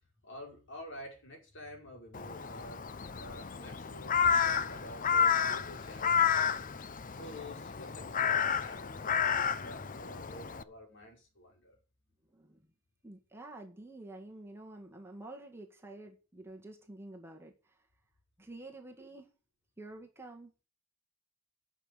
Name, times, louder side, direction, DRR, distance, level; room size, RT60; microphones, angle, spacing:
voice 1, 0.2-2.8 3.2-4.2 4.4-6.7 7.1-11.8, left 1 dB, 55° left, 4.9 m, -49 dB
Crow, 2.1-10.6, left 7 dB, 40° left, 0.6 m, -31 dB
voice 2, 12.3-12.7 13.0-17.9 18.4-19.3 19.8-20.5, right 2 dB, 10° right, 1.7 m, -49 dB
10.5 x 6.5 x 8.2 m
head